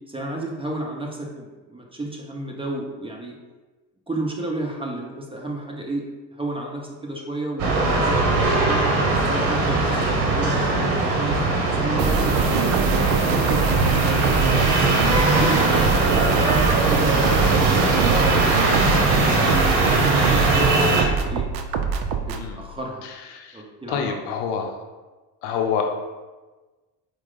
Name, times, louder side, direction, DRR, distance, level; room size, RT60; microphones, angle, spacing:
voice 1, 0.1-3.3 4.1-6.0 6.3-8.8 9.2-11.4 11.7-14.3 15.2-17.1 17.5-19.7 20.1-21.5 22.3-23.1 23.5-24.2, right 1 dB, 10° right, -1 dB, 0.7 m, -32 dB
sound 1, 7.6-21.1, right 2 dB, 65° right, 0.9 m, -20 dB
sound 2, 12.0-22.5, right 6 dB, 50° right, 0.5 m, -24 dB
voice 2, 23.0-23.6 23.9-24.7 25.4-25.9, left 6 dB, 65° left, 4 dB, 0.7 m, -27 dB
4.4 x 2.2 x 3.9 m, 1.2 s
hypercardioid pair, 60°, 49 cm